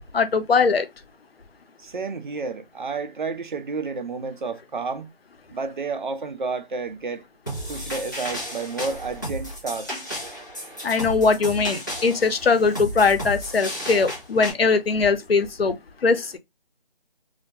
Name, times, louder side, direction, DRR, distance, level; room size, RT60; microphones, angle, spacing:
voice 1, 0.1-0.9 10.8-15.8 16.0-16.3, left 4 dB, 85° left, 0.6 m, -21 dB
voice 2, 1.8-5.1 5.5-7.2 7.7-10.0, right 4 dB, 55° right, 0.5 m, -31 dB
sound 1, 7.5-14.5, equal, 20° left, 0.5 m, -33 dB
2.2 x 2.1 x 2.7 m
figure-of-eight pair, 160°, 29 cm